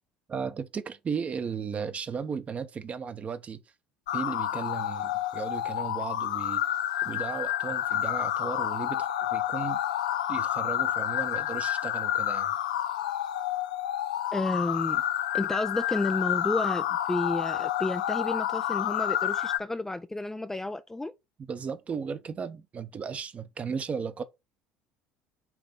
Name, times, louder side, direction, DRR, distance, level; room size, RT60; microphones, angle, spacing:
voice 1, 0.3-3.6 4.1-6.6 7.0-9.8 10.3-12.5 21.5-24.2, right 6 dB, 30° right, 0.9 m, -35 dB
sound 1, 4.1-19.6, left 12 dB, 75° left, 0.4 m, -29 dB
voice 2, 14.3-15.0 15.3-21.1, left 2 dB, 10° left, 0.4 m, -31 dB
6.0 x 3.3 x 5.1 m
figure-of-eight pair, 65°, 4 cm